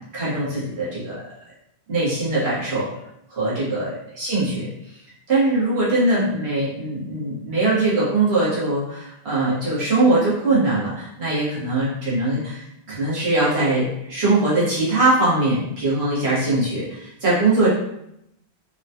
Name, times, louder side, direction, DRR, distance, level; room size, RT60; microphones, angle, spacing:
voice 1, 0.1-1.2 1.9-2.9 3.3-4.7 5.3-12.6 12.9-17.7, right 2 dB, 70° right, -9 dB, 1.6 m, -21 dB
3.8 x 2.3 x 2.7 m, 0.79 s
omnidirectional pair, 1.1 m